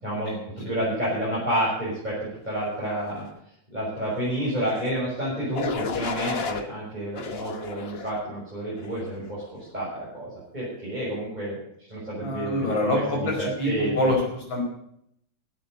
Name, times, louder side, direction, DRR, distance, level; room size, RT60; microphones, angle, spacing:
voice 1, 0.0-2.2 2.4-3.2 3.7-11.6 11.9-14.1, right 1 dB, 20° right, -8 dB, 6.6 m, -30 dB
sound 1, 4.6-5.0 5.5-6.6 7.2-8.2 8.8-9.2, left 5 dB, 35° left, 1.2 m, -33 dB
voice 2, 12.2-14.6, left 1 dB, 90° left, 0 dB, 5.8 m, -26 dB
16.0 x 8.6 x 8.2 m, 0.71 s
omnidirectional pair, 2.1 m